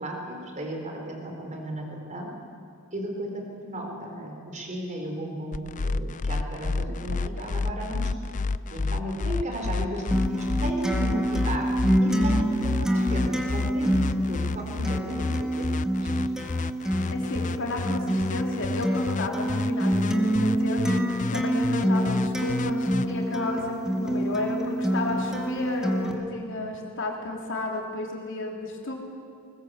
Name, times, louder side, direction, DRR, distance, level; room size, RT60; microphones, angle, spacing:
voice 1, 0.0-2.3 2.9-8.0 8.7-11.7 12.0-15.7 16.0-16.1, right 1 dB, 35° right, 1 dB, 4.3 m, -35 dB
sound 1, 5.5-23.1, left 3 dB, 35° left, 0.5 m, -30 dB
Acoustic guitar, 10.1-26.1, equal, 5° right, 2.0 m, -27 dB
voice 2, 17.1-20.8 21.3-28.9, left 2 dB, 65° left, 0 dB, 3.4 m, -32 dB
20.5 x 20.0 x 8.2 m, 2.4 s
head